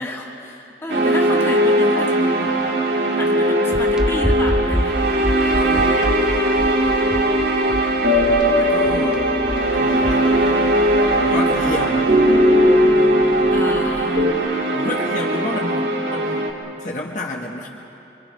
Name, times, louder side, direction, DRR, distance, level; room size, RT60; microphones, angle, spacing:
voice 1, 0.0-2.7 3.2-5.0 13.5-14.3, left 1 dB, 15° left, -2 dB, 2.2 m, -30 dB
sound 1, 0.9-16.5, right 1 dB, 75° right, 2.4 m, -20 dB
sound 2, 3.7-10.5, equal, 5° right, 0.7 m, -26 dB
voice 2, 5.5-6.0 8.6-9.3 9.7-10.3 11.1-12.1 14.7-16.5 16.8-17.7, left 2 dB, 45° left, -2 dB, 1.5 m, -30 dB
sound 3, 8.0-14.3, left 1 dB, 55° right, 2.4 m, -20 dB
25.5 x 24.5 x 5.4 m, 3.0 s
head